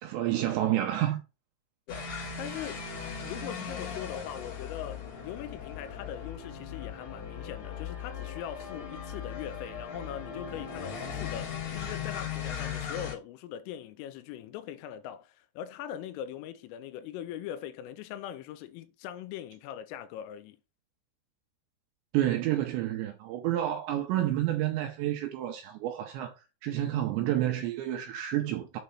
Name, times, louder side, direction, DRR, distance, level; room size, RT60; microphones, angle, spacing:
voice 1, 0.0-1.2 22.1-26.3 26.6-28.8, right 13 dB, 90° right, 2.6 m, -29 dB
sound 1, 1.9-13.1, left 7 dB, 50° left, 2.3 m, -38 dB
voice 2, 2.4-2.9 3.2-20.6, left 10 dB, 85° left, 3.2 m, -41 dB
7.7 x 3.3 x 5.5 m
omnidirectional pair, 5.8 m